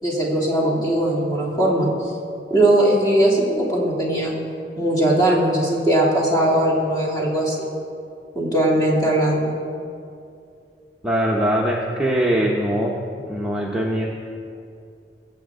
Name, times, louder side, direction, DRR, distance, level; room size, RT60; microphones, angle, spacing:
voice 1, 0.0-1.9 2.5-4.4 4.8-7.7 8.3-9.5, right 1 dB, 25° left, -4 dB, 2.7 m, -19 dB
voice 2, 11.0-13.0 13.3-14.0, right 1 dB, 5° right, -3 dB, 0.9 m, -21 dB
22.5 x 8.2 x 3.7 m, 2.4 s
head